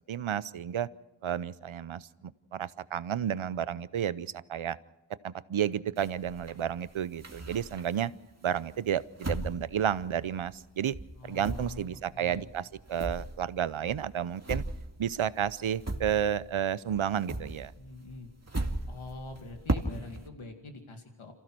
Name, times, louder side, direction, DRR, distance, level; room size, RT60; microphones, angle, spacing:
voice 1, 0.1-0.9 1.2-2.1 2.5-4.8 5.2-8.1 8.4-10.9 11.2-14.6 15.0-17.7, right 9 dB, 80° right, 17 dB, 0.7 m, -31 dB
sound 1, 6.0-8.1 8.6-10.7 10.9-16.6 16.9-20.3, right 2 dB, 35° right, 2.2 m, -37 dB
voice 2, 11.2-12.5 17.8-18.3 18.9-21.3, left 3 dB, 90° left, 4 dB, 2.4 m, -45 dB
27.0 x 15.5 x 6.2 m, 1.1 s
cardioid pair, 45°, 48 cm